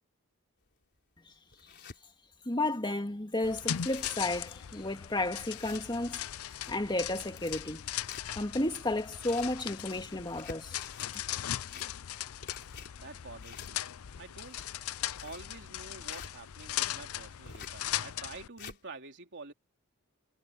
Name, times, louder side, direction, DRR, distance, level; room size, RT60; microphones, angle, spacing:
sound 1, 0.7-0.8 1.3-2.0 2.5-2.6 2.9-3.0 3.4-3.5 3.7-4.3 4.7-4.8 5.5-6.3 7.1-8.6 9.0-9.6 10.2-11.1 11.5-12.2 12.4-16.3 17.5-17.8 18.3-18.8, left 5 dB, 50° left, 3.9 m, -49 dB
voice 1, 2.5-6.3 6.7-7.8 8.4-10.9, left 2 dB, 20° left, 2.2 m, -32 dB
sound 2, 3.4-18.5, left 11 dB, 80° left, 0.6 m, -39 dB
voice 2, 13.0-13.9 14.2-14.6 15.2-19.5, right 3 dB, 55° right, 3.3 m, -48 dB
head